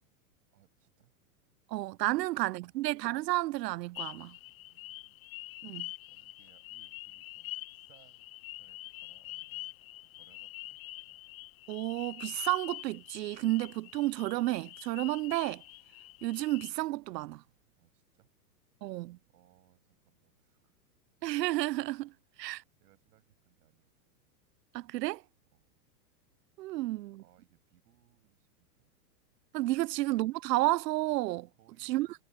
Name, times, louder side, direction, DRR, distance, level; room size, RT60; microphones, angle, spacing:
voice 1, 0.5-1.1 2.1-2.3 2.6-2.8 4.6-5.2 6.0-9.8 10.0-11.2 17.8-18.3 19.3-20.7 22.8-23.9 25.5-25.7 26.7-28.9 31.6-32.2, right 15 dB, 70° right, 7.2 m, -68 dB
voice 2, 1.7-4.4 5.6-5.9 11.7-15.6 16.2-17.4 18.8-19.2 21.2-22.1 22.4-22.6 24.7-25.2 26.6-27.2 29.5-31.5 31.8-32.1, right 18 dB, 85° right, 0.6 m, -31 dB
sound 1, 4.0-16.7, left 18 dB, 55° left, 1.1 m, -46 dB
supercardioid pair, 145°, 48 cm